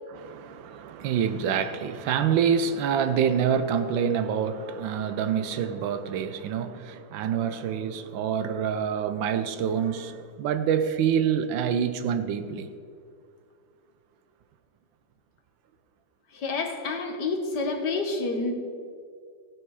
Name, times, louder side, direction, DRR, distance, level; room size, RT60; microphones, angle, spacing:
voice 1, 0.1-12.7, right 7 dB, 85° right, 10 dB, 1.5 m, -26 dB
voice 2, 16.3-18.5, left 3 dB, 65° left, 3 dB, 1.9 m, -28 dB
15.5 x 9.3 x 4.8 m, 2.2 s
omnidirectional pair, 2.0 m